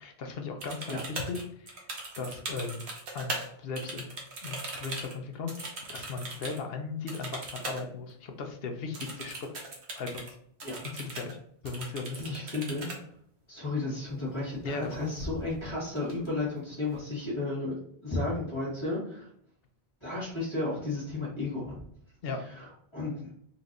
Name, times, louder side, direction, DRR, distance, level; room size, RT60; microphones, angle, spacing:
voice 1, 0.0-1.9 2.2-2.8 3.1-4.1 4.4-9.4 10.0-10.4 10.9-11.4 11.6-12.3 14.6-15.1 22.2-22.4, left 4 dB, 70° left, 5 dB, 0.9 m, -37 dB
sound 1, 0.6-3.5 3.8-6.6 7.1-7.8 8.1-8.2 8.9-10.3 10.6-11.3 11.7-13.0 14.7-14.9 15.2-15.6 16.0-16.6, right 2 dB, 85° right, 1.2 m, -39 dB
voice 2, 12.2-13.1 13.5-17.7 18.0-19.3 20.0-21.8 22.4-23.3, left 2 dB, 25° left, -11 dB, 1.8 m, -33 dB
4.2 x 3.0 x 2.6 m, 0.66 s
omnidirectional pair, 1.1 m